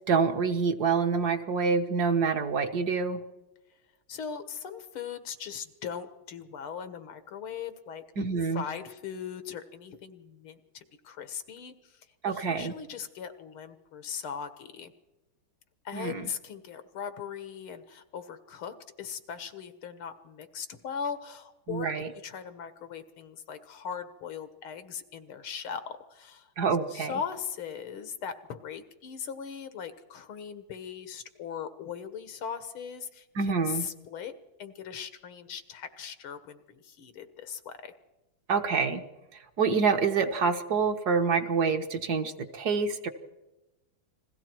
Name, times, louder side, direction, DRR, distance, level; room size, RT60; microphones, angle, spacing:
voice 1, 0.1-3.2 8.2-8.6 12.2-12.7 15.9-16.3 21.7-22.1 26.6-27.1 33.3-33.9 38.5-39.0 39.6-43.1, right 5 dB, 55° right, 6 dB, 1.6 m, -27 dB
voice 2, 4.1-8.0 8.5-14.9 15.9-26.5 26.9-34.3 34.6-37.9, left 7 dB, 90° left, 10 dB, 2.2 m, -39 dB
30.0 x 21.0 x 4.6 m, 1.0 s
omnidirectional pair, 2.3 m